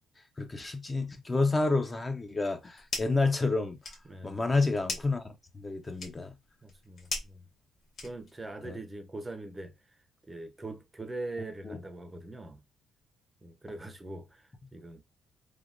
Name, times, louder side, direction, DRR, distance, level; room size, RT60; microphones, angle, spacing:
voice 1, 0.4-3.8 4.2-5.3 5.5-6.4 8.6-8.8 11.6-11.8, left 3 dB, 25° left, 0.6 m, -29 dB
sound 1, 2.5-3.3 3.6-8.5, left 3 dB, 60° left, 1.2 m, -41 dB
voice 2, 4.1-4.5 6.6-7.4 8.0-9.9 10.3-12.6 13.4-15.0, right 2 dB, 20° right, 0.6 m, -42 dB
3.3 x 2.2 x 2.4 m
cardioid pair, 90°, 0 cm